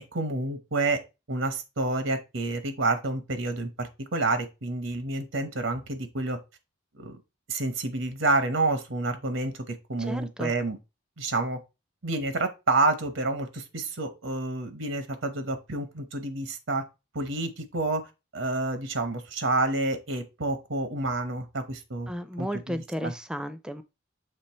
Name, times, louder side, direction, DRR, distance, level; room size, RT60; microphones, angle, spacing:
voice 1, 0.1-1.0 1.3-6.4 7.0-7.2 7.5-10.8 11.2-11.6 12.0-16.8 17.1-22.1 22.4-23.1, right 2 dB, 85° right, 1.0 m, -29 dB
voice 2, 10.0-10.5 22.1-23.8, equal, 5° right, 0.4 m, -34 dB
6.8 x 3.2 x 4.3 m
head